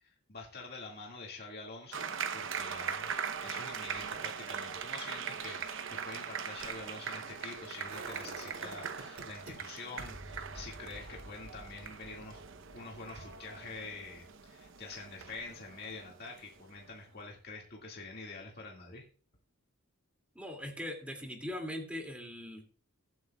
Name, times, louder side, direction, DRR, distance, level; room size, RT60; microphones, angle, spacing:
voice 1, 0.0-3.1 3.4-12.4 12.7-19.0, left 3 dB, 50° left, -2 dB, 2.0 m, -46 dB
sound 1, 1.9-16.9, right 7 dB, 60° right, 0.9 m, -41 dB
sound 2, 7.9-9.5 10.0-15.8 16.1-16.2, right 2 dB, 80° right, 3.4 m, -50 dB
voice 2, 20.4-22.6, left 1 dB, 5° right, 2 dB, 2.4 m, -40 dB
22.0 x 8.0 x 2.3 m, 0.43 s
head